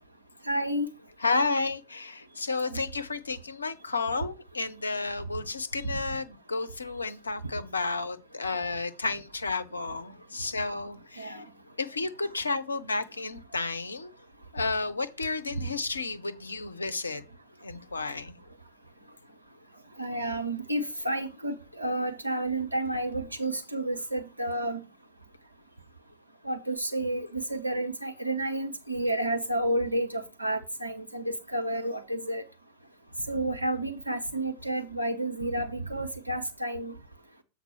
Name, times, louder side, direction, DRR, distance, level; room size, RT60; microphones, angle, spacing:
voice 1, 0.5-0.9 2.7-2.8 11.2-11.4 20.0-24.8 26.4-32.4 33.3-36.9, right 1 dB, 85° right, 1.1 m, -30 dB
voice 2, 1.2-11.4 11.8-14.1 14.5-17.2 17.6-18.4, left 3 dB, 80° left, 0.7 m, -32 dB
7.3 x 3.9 x 5.8 m
figure-of-eight pair, 90°, 0 cm